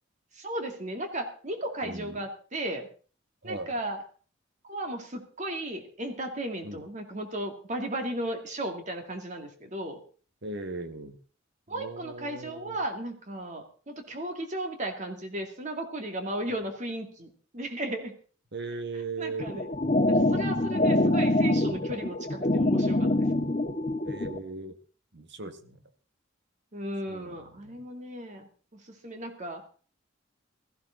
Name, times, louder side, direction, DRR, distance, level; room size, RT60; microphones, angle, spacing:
voice 1, 0.4-2.9 3.4-4.0 4.6-10.0 11.7-18.1 19.2-19.7 20.1-23.3 26.7-29.8, right 1 dB, 35° right, 4 dB, 2.2 m, -35 dB
voice 2, 1.8-2.2 3.4-3.7 6.6-6.8 10.4-11.2 11.7-12.8 18.5-19.5 21.9-22.1 23.5-23.7 24.0-24.8 25.1-25.8 27.1-27.8, right 3 dB, 60° right, 8 dB, 1.7 m, -39 dB
sound 1, 19.4-24.4, left 1 dB, 35° left, 1.4 m, -25 dB
17.0 x 14.5 x 3.9 m, 0.40 s
head